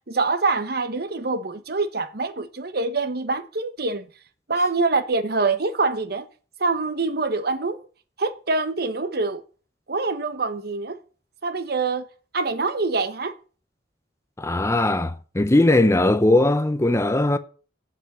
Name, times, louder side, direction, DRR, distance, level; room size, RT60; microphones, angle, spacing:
voice 1, 0.0-4.1 4.5-6.3 6.6-7.8 8.2-9.4 9.9-11.0 11.4-12.1 12.3-13.3, right 3 dB, 60° right, 1.1 m, -25 dB
voice 2, 14.4-17.4, left 2 dB, 15° left, 0.6 m, -19 dB
8.1 x 7.7 x 7.9 m
head